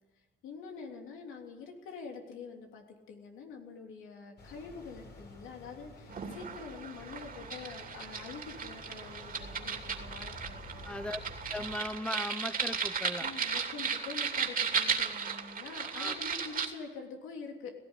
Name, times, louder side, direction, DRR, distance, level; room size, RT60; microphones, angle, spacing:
voice 1, 0.4-11.1 13.2-17.7, left 5 dB, 90° left, 2 dB, 3.3 m, -46 dB
sound 1, 4.4-11.8, left 1 dB, 60° left, 5.2 m, -50 dB
sound 2, 6.1-16.7, right 6 dB, 45° right, 2.8 m, -35 dB
voice 2, 10.8-11.2 11.5-13.3 16.0-16.2, left 1 dB, 5° left, 12 dB, 1.0 m, -38 dB
17.5 x 15.0 x 10.0 m, 1.2 s
cardioid pair, 90°, 20 cm